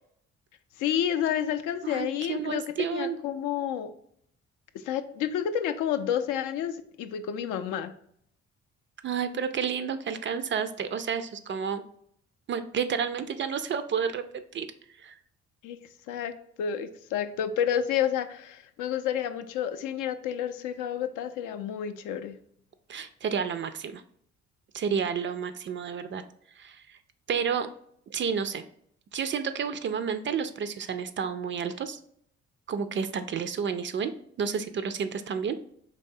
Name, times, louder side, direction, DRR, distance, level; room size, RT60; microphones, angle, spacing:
voice 1, 0.8-2.6 2.9-3.9 4.8-7.9 15.6-15.8 16.1-16.3 16.6-22.4, left 9 dB, 60° left, 10 dB, 0.5 m, -30 dB
voice 2, 1.8-3.2 9.0-11.8 12.5-14.7 15.0-15.1 22.9-24.0 24.7-26.2 26.6-27.0 27.3-27.7 28.1-28.6 29.1-32.0 32.7-34.1 34.4-35.6, right 7 dB, 35° right, 10 dB, 0.4 m, -30 dB
4.0 x 3.2 x 2.6 m, 0.67 s
hypercardioid pair, 45°, 35 cm